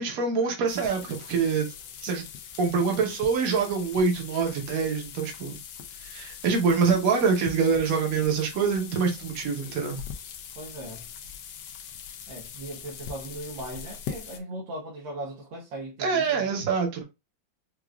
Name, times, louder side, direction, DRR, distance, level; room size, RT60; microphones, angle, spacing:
voice 1, 0.0-1.7 2.0-2.2 2.6-5.6 6.0-10.0 16.0-17.0, right 5 dB, 55° right, 1.2 m, -25 dB
sound 1, 0.7-14.4, left 7 dB, 70° left, 1.2 m, -42 dB
voice 2, 10.6-11.1 12.3-16.6, right 1 dB, 80° right, 1.6 m, -38 dB
4.9 x 2.4 x 2.3 m
omnidirectional pair, 2.1 m